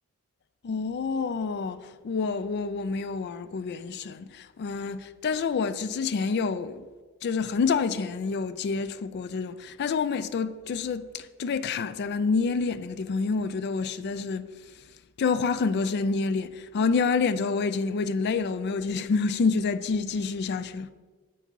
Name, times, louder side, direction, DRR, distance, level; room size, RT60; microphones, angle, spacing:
voice 1, 0.6-6.9 7.2-14.9 15.2-20.9, left 4 dB, 50° left, 0.3 m, -28 dB
7.4 x 4.1 x 5.4 m
head